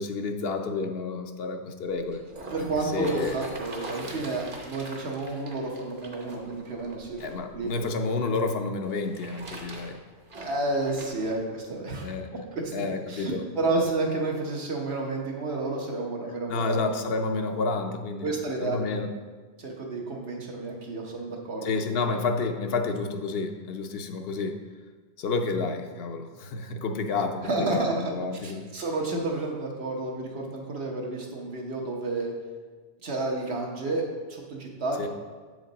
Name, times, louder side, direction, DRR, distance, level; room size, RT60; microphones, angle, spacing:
voice 1, 0.0-2.2 2.6-3.5 4.0-4.2 7.2-10.0 12.0-12.5 12.7-13.5 16.5-18.3 18.6-19.1 21.6-24.6 25.2-28.7 35.0-35.1, left 3 dB, 70° left, 6 dB, 0.8 m, -30 dB
sound 1, 1.9-8.0 8.8-11.4 12.0-12.1, right 2 dB, 55° right, 1.1 m, -42 dB
voice 2, 2.5-7.2 7.5-7.8 10.3-12.1 12.5-16.8 18.2-19.0 19.6-21.7 27.4-28.1 28.4-32.3 33.0-34.0 34.3-35.1, right 2 dB, 75° right, 0 dB, 1.3 m, -30 dB
7.4 x 5.1 x 3.9 m, 1.4 s
omnidirectional pair, 1.1 m